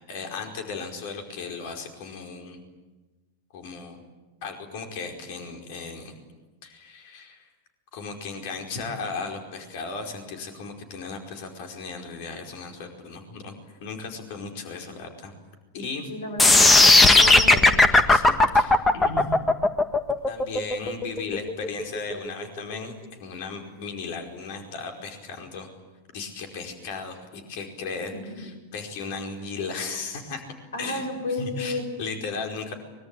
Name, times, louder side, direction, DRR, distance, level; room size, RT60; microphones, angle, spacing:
voice 1, 0.1-2.6 3.5-4.0 4.4-6.1 6.6-7.5 7.9-15.3 15.7-16.1 17.0-17.3 18.1-19.3 20.3-22.9 23.2-25.7 26.1-30.4 30.8-31.1 31.4-32.7, left 4 dB, 50° left, 4 dB, 4.9 m, -36 dB
voice 2, 16.1-16.6 16.9-17.8 20.8-20.9 28.1-28.5 30.7-31.9, left 2 dB, 65° left, 7 dB, 7.0 m, -32 dB
sound 1, 16.4-22.4, left 2 dB, 15° left, 1.7 m, -16 dB
24.5 x 23.0 x 8.9 m, 1.2 s
figure-of-eight pair, 90°, 0 cm